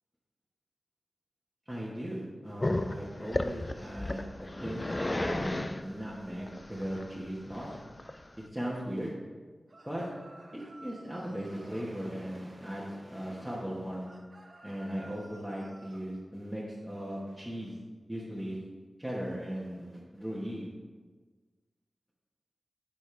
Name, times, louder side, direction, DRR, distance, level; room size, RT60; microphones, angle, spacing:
voice 1, 1.7-4.2 4.6-7.7 8.5-9.1 9.8-10.1 10.5-14.1 14.6-17.8 18.1-18.6 19.0-20.7, equal, 5° right, -7 dB, 1.4 m, -38 dB
Growling, 2.6-8.5, left 1 dB, 30° left, 0.4 m, -34 dB
sound 1, 9.7-11.9 14.0-16.0, right 1 dB, 50° right, 1.0 m, -54 dB
10.0 x 4.2 x 3.3 m, 1.4 s
cardioid pair, 45°, 0 cm